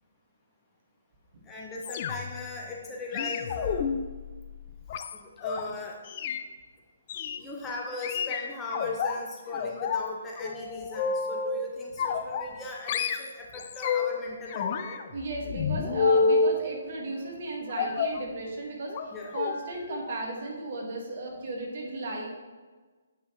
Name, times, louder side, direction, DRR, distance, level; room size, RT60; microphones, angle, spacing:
voice 1, 1.5-3.9 5.1-6.0 7.4-15.0 19.1-19.3, left 2 dB, 15° left, -2 dB, 0.8 m, -38 dB
sound 1, 1.8-2.4 3.1-5.6 6.1-6.4 7.1-7.4 8.0-9.1 9.5-10.1 10.4-11.6 12.0-12.6 12.9-14.2 14.5-16.6 17.8-18.2 18.9-19.1 19.3-19.6 19.9-20.1 20.4-20.5, left 5 dB, 35° left, 0.4 m, -29 dB
voice 2, 15.1-22.3, right 1 dB, 45° right, -1 dB, 1.6 m, -35 dB
8.5 x 5.5 x 3.0 m, 1.4 s
figure-of-eight pair, 135°, 0 cm